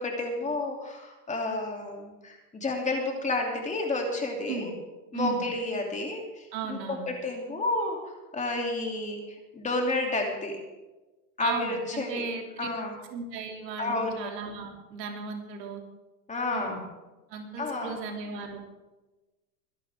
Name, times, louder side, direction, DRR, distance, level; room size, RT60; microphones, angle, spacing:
voice 1, 0.0-4.7 5.1-10.6 11.4-12.2 12.6-12.9 13.8-14.3 16.3-16.8 17.6-18.0, left 2 dB, 15° left, 1 dB, 2.9 m, -31 dB
voice 2, 6.5-7.1 11.4-12.7 13.1-15.8 16.5-16.8 17.3-18.6, right 5 dB, 80° right, 2 dB, 3.1 m, -36 dB
23.0 x 11.0 x 3.6 m, 1.1 s
supercardioid pair, 135°, 49 cm